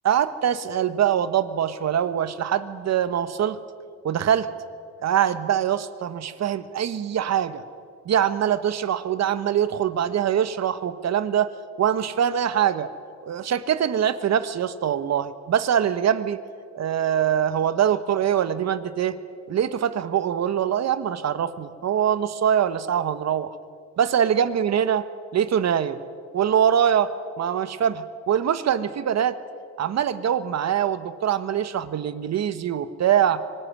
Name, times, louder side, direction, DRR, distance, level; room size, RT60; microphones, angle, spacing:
voice 1, 0.0-3.6 4.0-4.5 5.0-7.6 8.0-11.5 11.8-12.9 13.3-16.4 16.7-19.2 19.5-23.5 24.0-25.0 25.3-26.0 26.3-29.4 29.8-33.4, right 9 dB, 60° right, 13 dB, 1.3 m, -23 dB
25.0 x 18.0 x 9.8 m, 2.3 s
cardioid pair, 90°, 30 cm